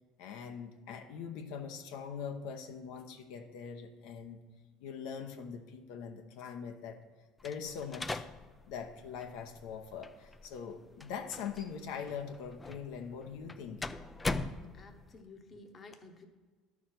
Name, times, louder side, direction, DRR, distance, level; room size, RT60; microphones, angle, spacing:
voice 1, 0.2-4.4 4.8-7.0 7.4-8.3 8.7-13.8, left 6 dB, 75° left, 5 dB, 0.8 m, -42 dB
sound 1, 7.4-15.2, left 2 dB, 15° left, 0.4 m, -42 dB
voice 2, 14.7-16.2, left 3 dB, 30° left, 6 dB, 1.0 m, -53 dB
11.5 x 4.8 x 5.8 m, 1.4 s
supercardioid pair, 115°, 0 cm